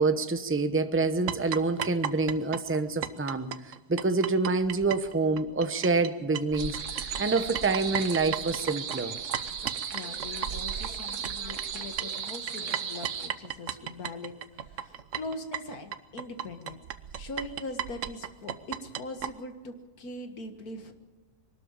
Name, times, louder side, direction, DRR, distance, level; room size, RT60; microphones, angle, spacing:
voice 1, 0.0-9.1, right 3 dB, 10° right, 0.7 m, -27 dB
sound 1, 1.3-6.1 6.3-19.3, right 9 dB, 60° right, 1.1 m, -35 dB
sound 2, 6.6-13.3, right 7 dB, 80° right, 1.7 m, -36 dB
voice 2, 9.9-16.8 17.2-20.9, left 2 dB, 70° left, 2.1 m, -41 dB
23.0 x 12.5 x 8.9 m
omnidirectional pair, 1.7 m